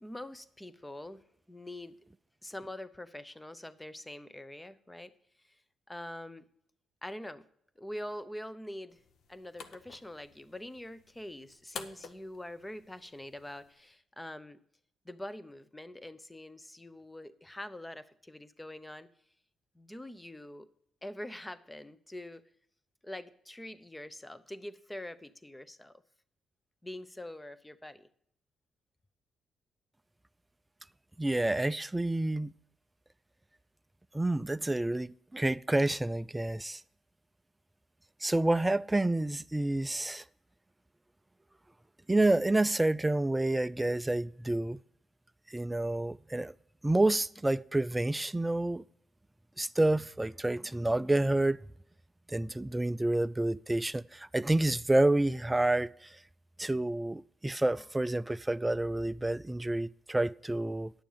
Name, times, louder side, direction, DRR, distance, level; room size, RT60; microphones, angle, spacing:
voice 1, 0.0-1.2 1.5-2.0 2.4-5.1 5.9-6.4 7.0-7.5 7.8-9.0 9.3-14.6 15.0-19.1 19.7-20.7 21.0-22.4 23.0-26.0 26.8-28.1, left 1 dB, 10° left, 0.7 m, -44 dB
sound 1, 8.9-13.9, left 6 dB, 70° left, 0.9 m, -50 dB
voice 2, 31.2-32.5 34.1-36.8 38.2-40.2 42.1-44.8 45.5-46.5 46.8-48.8 49.6-51.6 52.3-56.2 56.6-60.9, right 2 dB, 15° right, 0.3 m, -29 dB
10.5 x 7.0 x 5.6 m
cardioid pair, 85°, 0 cm